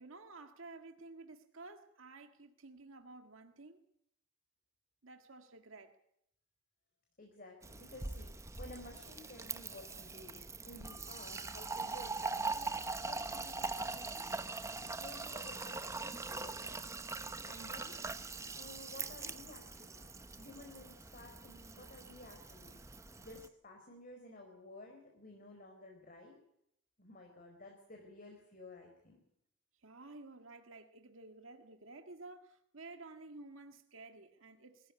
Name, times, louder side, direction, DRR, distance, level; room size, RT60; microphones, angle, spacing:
voice 1, 0.0-3.8 5.0-6.0 29.8-34.9, right 3 dB, 85° right, 1.8 m, -53 dB
voice 2, 7.2-14.5 14.8-16.8 17.4-18.0 18.5-22.8 23.2-26.4 27.0-29.2, left 2 dB, 45° left, 4.6 m, -54 dB
Fill (with liquid), 7.6-23.5, right 3 dB, 15° right, 0.9 m, -42 dB
22.5 x 15.0 x 9.6 m
head